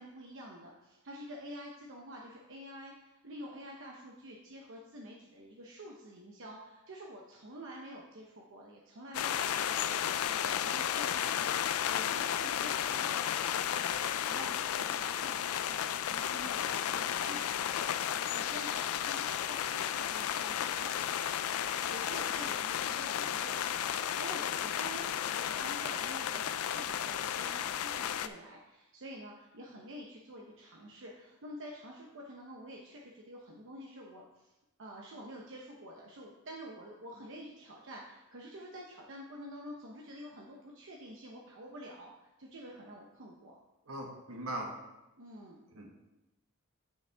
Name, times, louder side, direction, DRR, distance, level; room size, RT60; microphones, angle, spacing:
voice 1, 0.0-11.5 11.9-20.9 21.9-34.5 34.8-43.6 45.2-45.7, equal, 65° right, -1 dB, 0.9 m, -48 dB
sound 1, 9.1-28.3, left 10 dB, 80° left, 0.4 m, -33 dB
voice 2, 43.9-44.7 45.7-45.9, right 1 dB, 80° right, 1 dB, 1.4 m, -40 dB
7.7 x 7.1 x 3.5 m, 0.98 s
head